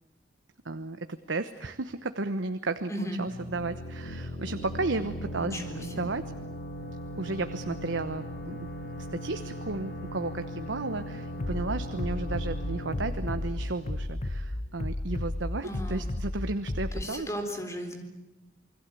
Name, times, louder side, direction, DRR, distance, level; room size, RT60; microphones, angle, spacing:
voice 1, 0.6-2.9 3.2-6.3 7.1-8.6 9.0-17.3, right 3 dB, 80° right, 9 dB, 1.1 m, -33 dB
voice 2, 2.9-3.2 5.4-6.1 15.6-16.1 16.9-18.0, equal, 15° left, 5 dB, 3.9 m, -36 dB
sound 1, 3.3-14.8, equal, 55° left, 7.7 m, -39 dB
Bass drum, 11.4-17.0, left 1 dB, 35° left, 0.8 m, -33 dB
28.5 x 21.5 x 8.5 m, 1.0 s
head